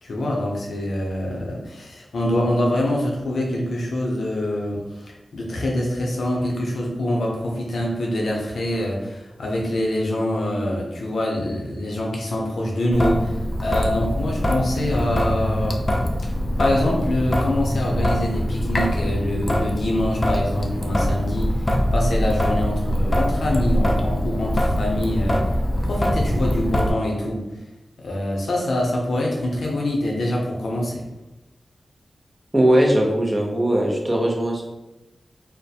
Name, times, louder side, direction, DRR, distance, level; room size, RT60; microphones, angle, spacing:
voice 1, 0.0-15.8 16.6-21.5 21.9-25.4 25.8-27.4 28.0-31.0, left 1 dB, 85° left, -2 dB, 0.5 m, -25 dB
Traffic noise roadway noise / Drip / Trickle dribble, 12.9-26.9, equal, 35° left, 0.3 m, -23 dB
voice 2, 32.5-34.6, right 1 dB, 20° right, -1 dB, 0.6 m, -19 dB
2.3 x 2.1 x 2.7 m, 1.0 s
wide cardioid pair, 70°, 0 cm